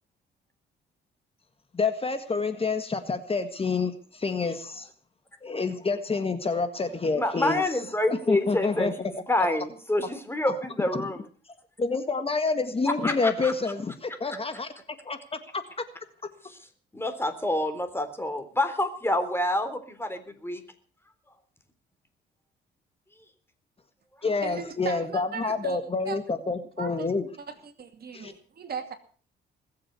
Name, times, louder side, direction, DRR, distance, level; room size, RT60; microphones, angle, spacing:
voice 1, 1.7-4.9 5.4-7.6 8.3-8.9 10.5-10.6 10.9-11.0 11.8-14.7 15.0-15.6 24.2-27.3 28.1-28.3, left 4 dB, 30° left, 9 dB, 1.7 m, -28 dB
voice 2, 7.1-8.9 9.3-11.2 13.0-13.5 16.9-20.6, left 1 dB, 10° left, 9 dB, 3.6 m, -27 dB
voice 3, 24.2-25.8 26.1-26.2 26.8-27.1 27.6-29.0, right 6 dB, 50° right, 7 dB, 2.5 m, -37 dB
21.0 x 7.7 x 8.2 m, 0.43 s
cardioid pair, 90°, 20 cm